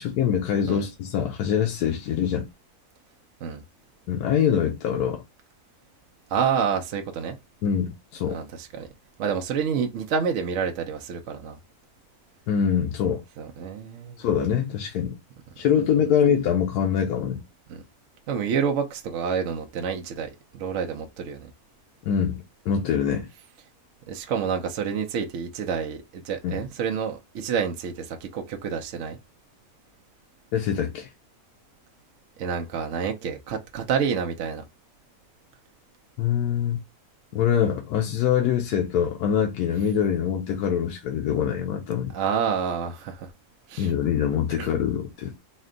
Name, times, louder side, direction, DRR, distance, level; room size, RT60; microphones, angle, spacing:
voice 1, 0.0-2.5 4.1-5.2 7.6-8.4 12.5-13.2 14.2-15.2 15.6-17.4 22.1-23.3 26.4-26.6 30.5-31.1 36.2-36.8 37.3-42.1 43.8-45.4, left 8 dB, 90° left, 1.2 m, -24 dB
voice 2, 6.3-7.4 8.3-8.9 9.2-11.6 13.4-14.2 16.0-16.1 17.7-17.8 18.3-21.5 24.1-29.2 32.4-34.6 42.1-43.3 43.7-43.9 44.6-44.7, right 6 dB, 65° right, 0.8 m, -28 dB
4.2 x 2.1 x 3.7 m
omnidirectional pair, 1.6 m